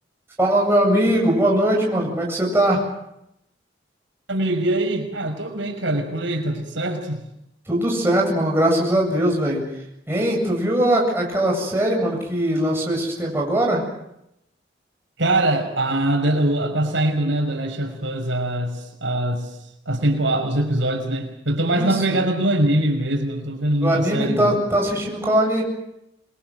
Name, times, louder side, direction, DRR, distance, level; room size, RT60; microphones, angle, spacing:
voice 1, 0.4-2.8 7.7-9.6 10.1-13.8 21.7-22.2 23.8-25.6, right 1 dB, 15° right, -1 dB, 8.0 m, -20 dB
voice 2, 4.3-7.2 15.2-19.5 19.9-24.6, right 1 dB, 85° right, 3 dB, 5.8 m, -23 dB
27.5 x 22.5 x 7.9 m, 0.83 s
head